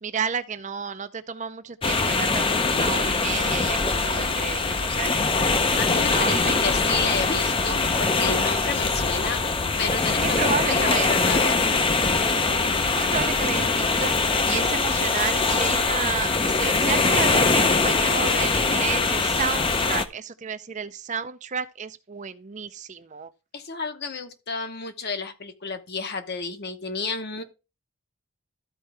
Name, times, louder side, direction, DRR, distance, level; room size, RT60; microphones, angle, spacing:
voice 1, 0.0-5.6 6.0-6.6 6.9-7.1 10.2-11.5 12.8-14.1 14.5-23.3, right 6 dB, 35° right, 0.5 m, -31 dB
sound 1, 1.8-20.1, left 3 dB, 25° left, 0.5 m, -22 dB
voice 2, 5.8-9.4 9.8-11.7 23.5-27.4, left 4 dB, 45° left, 0.9 m, -31 dB
13.5 x 4.5 x 3.3 m
head